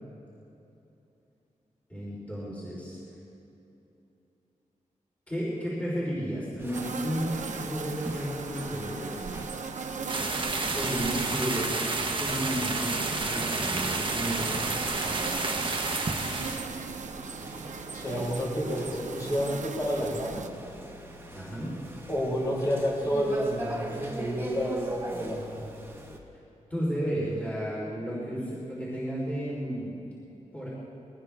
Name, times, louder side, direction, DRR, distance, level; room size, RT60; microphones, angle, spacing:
voice 1, 1.9-3.0 5.3-9.3 10.7-11.8 12.2-14.7 21.3-21.7 26.7-30.0 30.5-30.7, equal, 10° left, -8 dB, 4.1 m, -33 dB
sound 1, 6.6-26.2, right 1 dB, 15° right, 1.6 m, -42 dB
sound 2, 6.7-20.5, right 5 dB, 70° right, 1.0 m, -38 dB
sound 3, 10.1-16.6, right 3 dB, 40° right, 1.3 m, -30 dB
voice 2, 17.9-20.4 22.1-25.6, equal, 30° left, -5 dB, 4.7 m, -30 dB
21.5 x 19.0 x 3.6 m, 2.9 s
wide cardioid pair, 135°, 13 cm